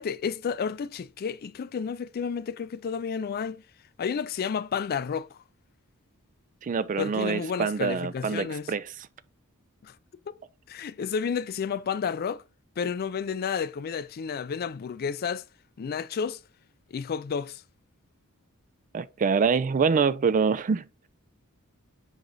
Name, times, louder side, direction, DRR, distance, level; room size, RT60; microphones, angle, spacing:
voice 1, 0.0-3.6 4.0-5.4 7.0-8.7 9.8-9.9 10.3-10.4 10.7-12.4 12.8-15.4 15.8-16.4 16.9-17.6, left 6 dB, 45° left, 0.4 m, -31 dB
voice 2, 6.6-8.9 18.9-20.8, right 5 dB, 35° right, 0.4 m, -25 dB
5.0 x 4.8 x 3.9 m
head